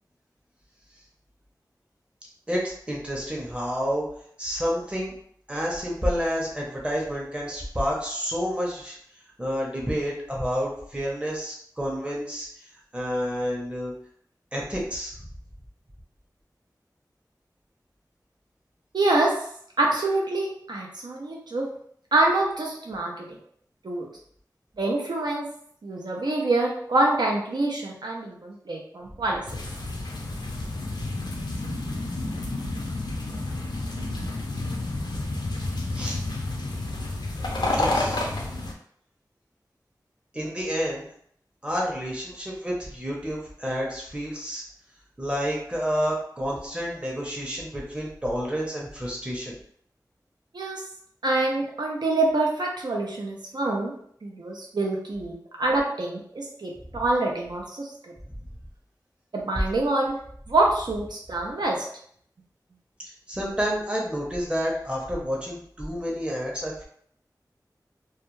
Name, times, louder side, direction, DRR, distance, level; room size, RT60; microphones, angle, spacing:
voice 1, 2.5-4.0 4.4-5.1 5.5-9.0 9.4-12.5 12.9-13.9 14.5-15.3 30.1-30.5 35.9-36.2 37.7-38.5 40.3-41.1 41.6-44.6 45.2-49.6 63.3-66.8, equal, 15° right, -3 dB, 0.7 m, -29 dB
voice 2, 18.9-19.4 19.8-21.7 22.1-23.4 23.8-24.1 24.8-25.5 25.8-29.4 50.5-50.8 51.2-53.9 54.2-57.9 59.3-60.2 60.5-61.9, right 2 dB, 75° right, -1 dB, 0.6 m, -26 dB
sound 1, 29.5-38.7, left 2 dB, 80° left, 0.5 m, -30 dB
2.3 x 2.2 x 3.0 m, 0.64 s
wide cardioid pair, 45°, 7 cm